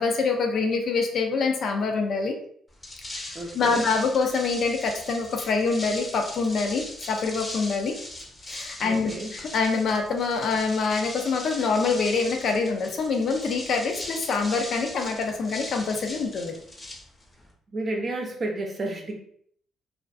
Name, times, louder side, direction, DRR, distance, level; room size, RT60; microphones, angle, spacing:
voice 1, 0.0-2.4 3.2-8.0 8.5-16.6, left 4 dB, 65° left, 3 dB, 0.5 m, -25 dB
sound 1, 2.7-17.5, left 1 dB, 25° left, 0.7 m, -39 dB
voice 2, 3.3-3.8 8.8-9.3 17.7-19.2, right 2 dB, 40° right, 1 dB, 0.5 m, -31 dB
2.5 x 2.4 x 2.3 m, 0.64 s
cardioid pair, 90°, 0 cm